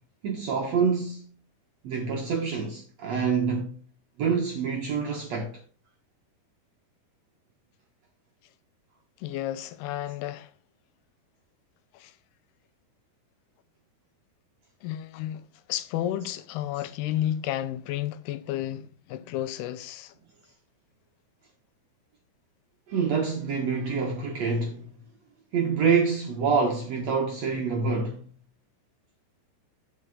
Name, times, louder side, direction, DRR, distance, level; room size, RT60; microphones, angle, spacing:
voice 1, 0.2-1.3 1.8-3.8 4.2-5.6 22.9-24.9 25.5-28.3, right 5 dB, 70° right, 1.6 m, -26 dB
voice 2, 9.2-10.5 11.9-12.1 14.8-20.1, left 12 dB, 85° left, 2.7 m, -32 dB
8.3 x 7.8 x 3.7 m
omnidirectional pair, 4.5 m